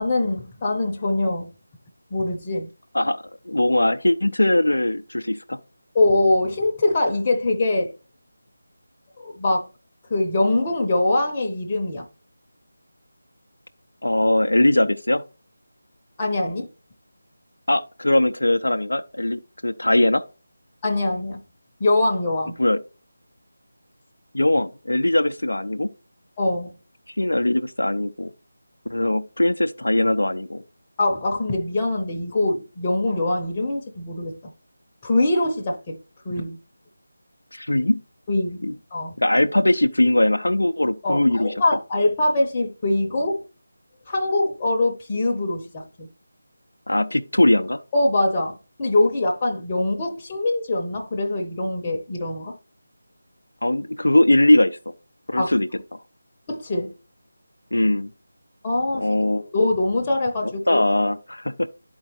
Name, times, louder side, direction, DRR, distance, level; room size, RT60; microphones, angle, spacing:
voice 1, 0.0-1.5 2.1-2.7 5.9-7.9 9.2-9.7 10.1-12.1 16.2-16.7 20.8-21.4 21.8-22.5 26.4-26.7 31.0-34.5 35.0-36.0 36.2-36.6 38.3-39.1 41.0-43.4 44.1-46.1 47.9-52.6 55.4-55.5 56.5-56.9 58.6-59.1 59.5-60.8, left 2 dB, 20° left, 0.7 m, -23 dB
voice 2, 2.9-5.6 14.0-15.2 17.7-20.2 22.6-22.8 24.3-25.9 27.1-28.3 28.9-30.6 37.5-38.0 38.6-38.7 39.2-41.5 46.9-47.8 53.6-54.8 55.3-55.7 57.7-58.1 58.9-59.4 60.7-61.7, left 1 dB, 70° left, 0.4 m, -20 dB
12.0 x 4.3 x 3.0 m
figure-of-eight pair, 160°, 0 cm